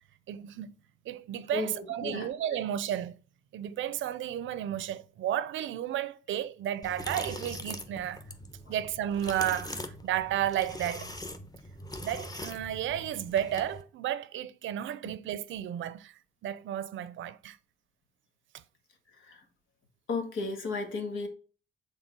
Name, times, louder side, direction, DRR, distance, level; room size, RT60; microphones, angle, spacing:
voice 1, 0.3-0.7 1.1-3.2 3.5-8.2 8.7-11.1 12.0-17.6, right 11 dB, 75° right, 0.6 m, -33 dB
voice 2, 1.5-2.6 8.7-8.8 19.2-19.4 20.1-21.3, left 4 dB, 80° left, 1.7 m, -34 dB
sound 1, 6.8-13.8, left 1 dB, 20° left, 1.1 m, -42 dB
6.7 x 3.9 x 4.6 m
cardioid pair, 90°, 20 cm